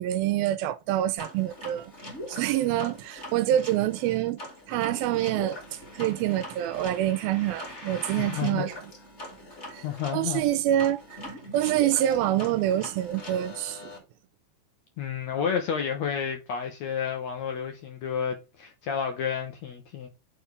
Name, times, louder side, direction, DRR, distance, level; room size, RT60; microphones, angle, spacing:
voice 1, 0.0-1.9 2.3-4.4 4.7-5.6 5.9-8.7 9.7-9.8 10.1-11.2 11.5-13.9, right 12 dB, 85° right, 2.5 m, -26 dB
sound 1, 1.2-14.0, left 1 dB, 20° left, 2.2 m, -42 dB
voice 2, 8.2-8.6 9.8-10.4 15.0-20.1, left 7 dB, 70° left, 1.8 m, -30 dB
9.4 x 4.4 x 3.4 m
omnidirectional pair, 4.3 m